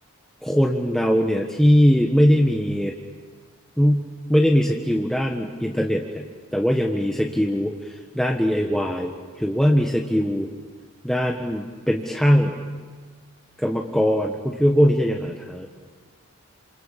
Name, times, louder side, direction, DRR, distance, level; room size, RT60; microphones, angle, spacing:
voice 1, 0.4-2.9 3.8-6.2 6.5-10.5 11.0-12.6 13.6-15.7, equal, ahead, 0 dB, 1.3 m, -21 dB
28.5 x 27.0 x 7.4 m, 1.5 s
head